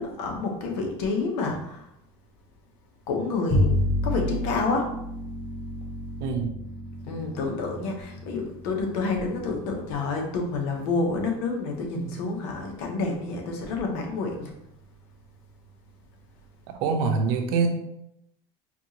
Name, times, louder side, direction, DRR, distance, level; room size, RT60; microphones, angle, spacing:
voice 1, 0.0-1.8 3.1-4.9 7.1-14.5, left 3 dB, 75° left, 1 dB, 1.0 m, -29 dB
Bowed string instrument, 3.5-10.0, left 1 dB, 40° left, 1.1 m, -30 dB
voice 2, 6.2-6.5 16.7-17.7, right 5 dB, 75° right, 5 dB, 0.7 m, -24 dB
4.4 x 2.8 x 2.9 m, 0.79 s
supercardioid pair, 115°, 14 cm